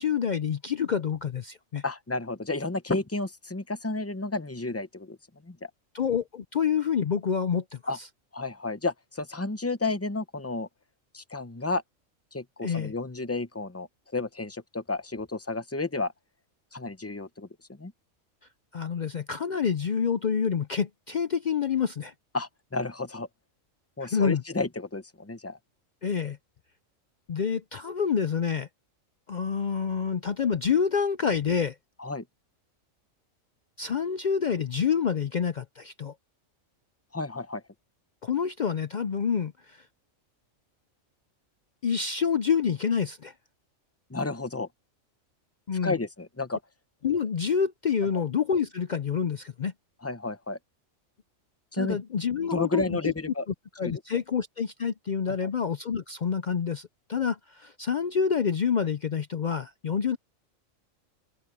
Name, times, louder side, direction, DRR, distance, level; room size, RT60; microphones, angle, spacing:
voice 1, 0.0-1.8 5.9-7.8 12.6-12.9 18.7-22.1 24.0-24.4 26.0-26.4 27.3-28.7 29.3-31.8 33.8-36.1 38.2-39.8 41.8-43.3 45.7-46.0 47.0-49.7 51.7-53.1 53.8-60.2, left 7 dB, 55° left, 0.5 m, -27 dB
voice 2, 1.8-5.2 5.4-5.6 7.9-8.0 8.3-10.7 11.1-11.8 12.3-13.9 14.1-16.1 16.7-17.5 17.8-17.9 22.3-23.3 24.0-25.6 32.0-32.2 37.1-37.6 44.1-44.7 45.8-46.6 50.0-50.6 51.7-52.0 52.5-53.4 53.8-53.9 55.3-55.5, left 3 dB, 15° left, 0.6 m, -31 dB
omnidirectional pair, 1.4 m